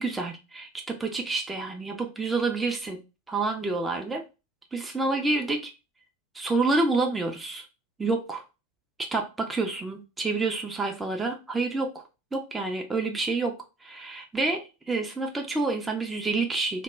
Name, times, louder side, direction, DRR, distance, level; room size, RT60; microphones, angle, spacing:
voice 1, 0.0-3.0 3.3-4.2 4.7-5.7 6.3-7.7 8.0-8.4 9.0-12.0 12.3-16.8, right 3 dB, 10° right, 0.4 m, -28 dB
2.1 x 2.1 x 3.3 m
figure-of-eight pair, 90°, 0 cm